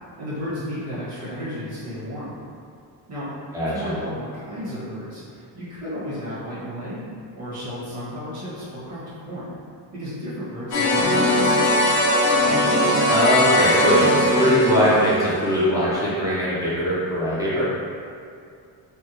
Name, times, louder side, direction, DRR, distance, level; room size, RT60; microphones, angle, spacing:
voice 1, 0.2-2.4 3.1-3.3 3.6-7.0 7.3-9.5 9.9-11.6, equal, 40° right, -11 dB, 1.3 m, -33 dB
voice 2, 3.5-4.0 13.1-17.6, equal, 10° right, -11 dB, 0.5 m, -21 dB
sound 1, 10.7-15.6, left 1 dB, 40° left, 0.6 m, -20 dB
3.5 x 2.2 x 2.9 m, 2.3 s
cardioid pair, 165°, 42 cm